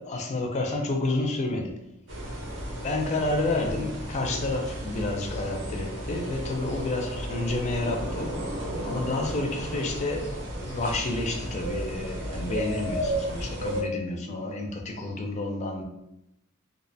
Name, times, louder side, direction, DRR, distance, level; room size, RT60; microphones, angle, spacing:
voice 1, 0.0-1.7 2.8-8.4 8.9-15.8, left 2 dB, 30° left, 3 dB, 0.3 m, -30 dB
sound 1, 2.1-13.8, right 1 dB, 60° right, 0.6 m, -33 dB
2.4 x 2.0 x 2.6 m, 0.87 s
head